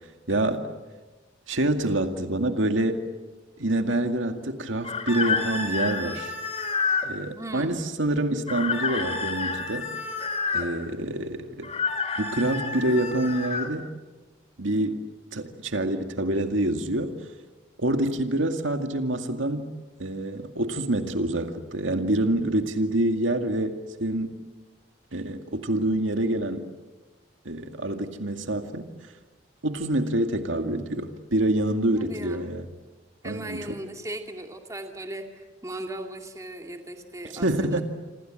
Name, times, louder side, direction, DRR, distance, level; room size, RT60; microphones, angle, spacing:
voice 1, 0.3-0.7 1.5-3.0 3.6-6.3 7.0-9.9 10.5-11.7 12.2-13.9 14.6-15.0 15.3-17.2 17.8-19.7 20.0-24.3 25.1-26.7 27.5-28.9 29.6-32.6 33.2-33.7 37.3-37.8, right 1 dB, 85° right, 6 dB, 2.2 m, -26 dB
sound 1, 4.8-7.1 8.5-10.7 11.6-13.7, left 4 dB, 30° left, 3.3 m, -29 dB
voice 2, 7.3-7.8 31.9-32.5 33.2-37.8, right 1 dB, 15° right, 3 dB, 2.4 m, -37 dB
27.5 x 26.5 x 7.7 m, 1.2 s
head